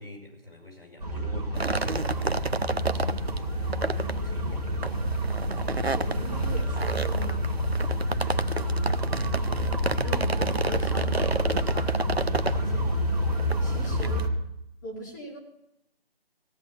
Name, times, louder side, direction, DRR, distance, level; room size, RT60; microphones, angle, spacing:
voice 1, 0.0-3.4 4.2-4.6 9.6-9.9, left 1 dB, 70° left, 1 dB, 5.5 m, -45 dB
sound 1, 1.0-14.3, equal, 40° right, 2.0 m, -28 dB
sound 2, 1.5-14.3, right 3 dB, 90° right, 0.8 m, -31 dB
voice 2, 5.9-7.6 8.3-8.9 10.0-12.9 13.6-14.3 14.8-15.4, equal, 20° left, 0 dB, 2.0 m, -41 dB
15.0 x 9.3 x 7.1 m, 0.82 s
figure-of-eight pair, 155°, 31 cm